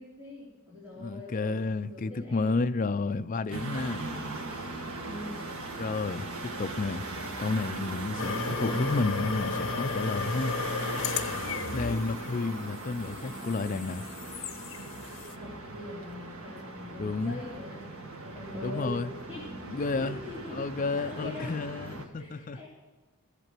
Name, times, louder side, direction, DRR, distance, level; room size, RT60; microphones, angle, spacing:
voice 1, 0.0-2.6 5.0-5.4 11.6-11.9 15.0-17.9 18.2-19.5 19.9-21.5 22.2-22.7, left 1 dB, 10° right, -10 dB, 3.4 m, -43 dB
voice 2, 1.0-4.1 5.8-7.1 7.4-10.5 11.7-14.0 17.0-17.4 18.6-19.1 19.7-20.2 20.5-22.6, left 3 dB, 40° left, 11 dB, 0.4 m, -31 dB
sound 1, 3.5-22.1, right 2 dB, 80° right, 1.6 m, -39 dB
sound 2, 8.2-15.4, left 4 dB, 60° left, 0.9 m, -35 dB
15.0 x 8.3 x 7.5 m, 1.2 s
head